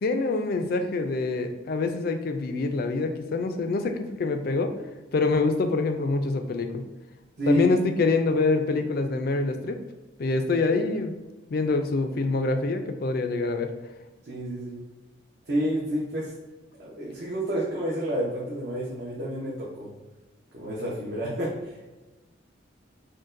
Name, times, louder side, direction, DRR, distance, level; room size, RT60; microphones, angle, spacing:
voice 1, 0.0-4.7 5.1-6.8 7.5-9.8 10.2-11.1 11.5-13.7, left 3 dB, 50° left, 7 dB, 0.4 m, -25 dB
voice 2, 7.4-7.7 14.2-14.8 15.5-16.3 16.8-19.9 20.5-21.9, equal, 55° right, -6 dB, 0.8 m, -29 dB
6.3 x 2.2 x 2.5 m, 1.2 s
head